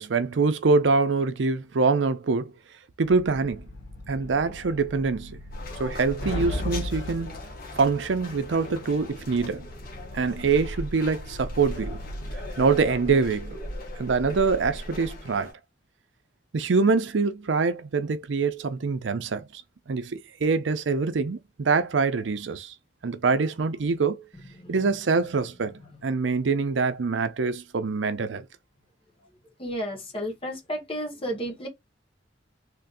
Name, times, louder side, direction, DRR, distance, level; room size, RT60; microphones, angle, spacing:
voice 1, 0.0-2.5 3.0-3.7 4.1-5.4 5.8-7.4 7.8-9.7 10.1-12.0 12.6-13.6 14.0-15.5 16.5-19.6 19.9-22.7 23.0-24.2 24.7-25.7 26.0-28.4, right 4 dB, 70° right, 0.5 m, -24 dB
sound 1, 3.0-12.3, left 1 dB, 80° left, 1.1 m, -38 dB
sound 2, 5.5-15.5, left 1 dB, 50° left, 1.5 m, -38 dB
voice 2, 24.6-24.9 29.6-31.7, equal, 30° left, 1.5 m, -32 dB
3.6 x 3.3 x 2.6 m
head